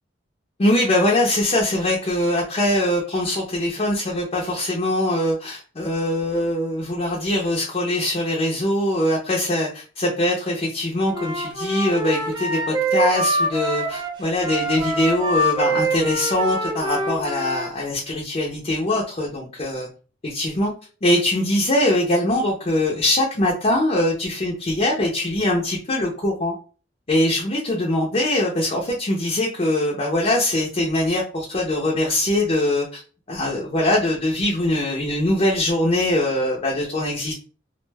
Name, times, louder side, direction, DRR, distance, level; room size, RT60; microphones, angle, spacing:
voice 1, 0.6-19.9 20.2-20.7 21.0-26.5 27.1-33.0 33.3-37.3, left 1 dB, 35° left, -2 dB, 0.5 m, -22 dB
Wind instrument woodwind instrument, 11.1-17.7, right 1 dB, 25° right, 0.4 m, -25 dB
2.4 x 2.1 x 3.3 m, 0.37 s
head